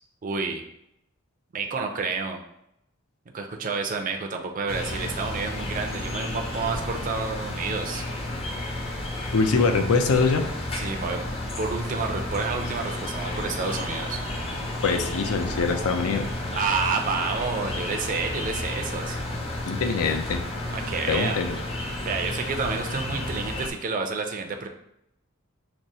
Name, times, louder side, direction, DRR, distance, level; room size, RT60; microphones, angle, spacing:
voice 1, 0.2-0.6 1.5-2.4 3.3-8.1 10.7-11.2 11.6-14.2 16.5-19.3 20.7-21.4 22.1-24.7, right 4 dB, 40° right, 3 dB, 0.4 m, -29 dB
sound 1, 4.7-23.7, left 1 dB, 25° left, 0.5 m, -32 dB
voice 2, 9.3-10.4 14.8-16.3 19.7-20.4 21.1-21.6, left 4 dB, 90° left, 6 dB, 0.5 m, -23 dB
6.0 x 2.0 x 2.7 m, 0.80 s
head